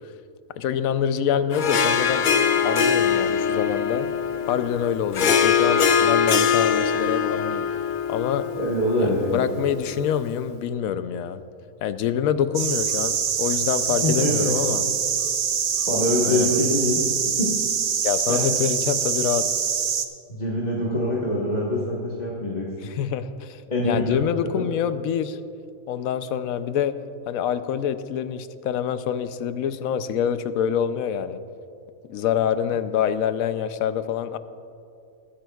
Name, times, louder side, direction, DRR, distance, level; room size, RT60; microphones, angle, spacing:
voice 1, 0.6-2.3 2.6-4.1 4.5-7.6 8.1-8.5 9.0-11.4 11.8-14.9 16.2-16.5 18.0-19.4 22.8-25.4 25.9-26.9 27.3-31.4 32.1-34.4, left 9 dB, 80° left, 12 dB, 1.0 m, -26 dB
Harp, 1.5-10.2, left 7 dB, 65° left, 0.4 m, -23 dB
voice 2, 8.6-9.4 14.0-14.5 15.9-17.0 17.4-17.5 18.3-18.7 20.3-22.7 23.7-24.6, left 1 dB, 30° left, -5 dB, 1.3 m, -24 dB
sound 1, 12.5-20.1, right 7 dB, 55° right, 0.7 m, -24 dB
20.5 x 10.5 x 2.3 m, 2.5 s
omnidirectional pair, 1.4 m